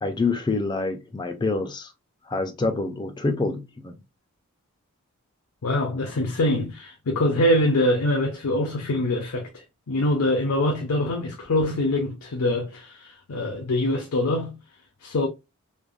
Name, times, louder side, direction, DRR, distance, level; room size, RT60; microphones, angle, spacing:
voice 1, 0.0-1.9 2.3-3.9, left 3 dB, 20° left, 0.3 m, -26 dB
voice 2, 5.6-14.6 15.0-15.3, left 1 dB, 80° left, 0.5 m, -24 dB
3.2 x 2.0 x 2.3 m
head